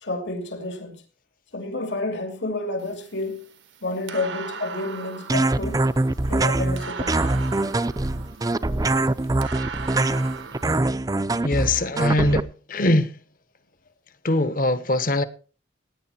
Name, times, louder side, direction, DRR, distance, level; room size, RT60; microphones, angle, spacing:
voice 1, 0.0-0.9 1.5-3.5 3.8-5.9 6.3-7.4, left 2 dB, 70° left, 2.8 m, -30 dB
sound 1, 2.8-10.8, right 6 dB, 90° right, 1.4 m, -39 dB
sound 2, 5.3-12.4, right 2 dB, 20° right, 0.5 m, -23 dB
voice 2, 11.4-13.2 14.2-15.2, left 1 dB, 50° left, 1.1 m, -22 dB
16.5 x 9.8 x 4.3 m
head